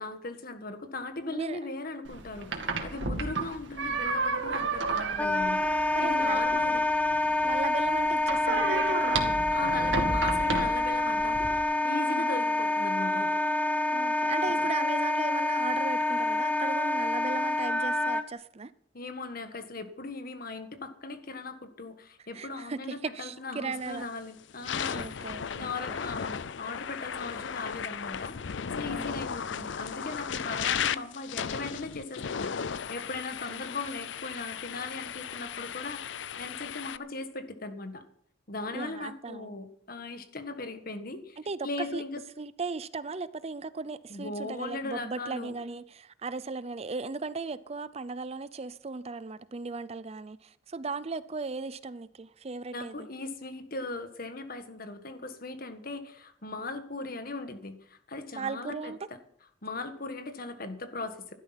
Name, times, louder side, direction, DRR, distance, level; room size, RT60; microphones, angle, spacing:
voice 1, 0.0-6.8 9.5-13.4 14.4-14.7 18.9-38.0 38.5-41.4 41.6-42.2 44.1-45.5 52.7-59.2 59.6-61.3, left 3 dB, 50° left, 1.6 m, -39 dB
sound 1, 2.1-11.6, right 3 dB, 75° right, 2.2 m, -33 dB
Wind instrument woodwind instrument, 5.2-18.2, left 2 dB, 10° left, 0.8 m, -27 dB
voice 2, 5.9-6.4 7.4-9.4 12.1-12.3 13.9-18.7 22.3-24.1 24.9-26.0 28.8-29.2 33.5-33.6 38.7-39.5 41.4-42.0 42.4-53.1 58.3-59.0, right 4 dB, 35° right, 0.5 m, -37 dB
sound 2, 23.8-24.0 24.5-37.0, left 7 dB, 75° left, 0.5 m, -35 dB
15.0 x 12.0 x 5.8 m
head